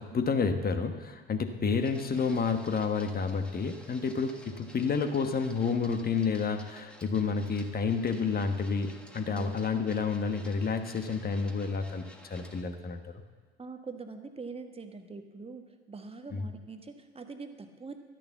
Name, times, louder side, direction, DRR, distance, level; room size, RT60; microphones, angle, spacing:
voice 1, 0.0-13.2 16.3-16.5, left 5 dB, 30° left, 7 dB, 1.3 m, -30 dB
Printer, 1.8-12.6, equal, 5° left, 1.6 m, -53 dB
voice 2, 9.3-9.8 13.6-18.0, right 4 dB, 20° right, 6 dB, 1.3 m, -43 dB
12.5 x 10.5 x 7.2 m, 1.5 s
figure-of-eight pair, 65°, 32 cm